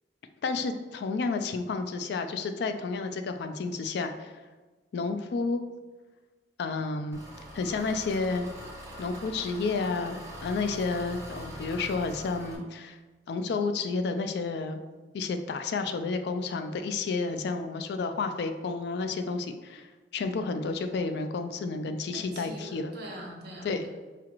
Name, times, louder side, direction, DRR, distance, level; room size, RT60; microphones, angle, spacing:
voice 1, 0.4-4.3 4.9-5.6 6.6-7.2 7.5-8.5 9.0-13.0 13.3-14.8 15.1-19.9 20.1-22.9 23.6-23.8, left 4 dB, 65° left, 8 dB, 0.3 m, -31 dB
Engine, 7.1-12.6, equal, 20° right, 0.7 m, -43 dB
voice 2, 22.1-23.9, equal, 65° right, -1 dB, 0.9 m, -43 dB
4.8 x 2.4 x 2.9 m, 1.3 s
head